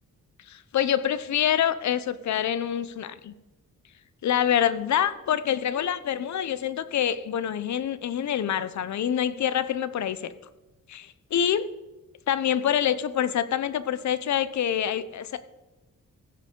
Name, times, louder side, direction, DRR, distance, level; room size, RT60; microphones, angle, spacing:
voice 1, 0.5-3.3 4.2-10.3 10.9-11.7 12.3-15.4, left 9 dB, 60° left, 14 dB, 0.6 m, -26 dB
16.0 x 7.7 x 3.7 m, 1.1 s
wide cardioid pair, 160°, 32 cm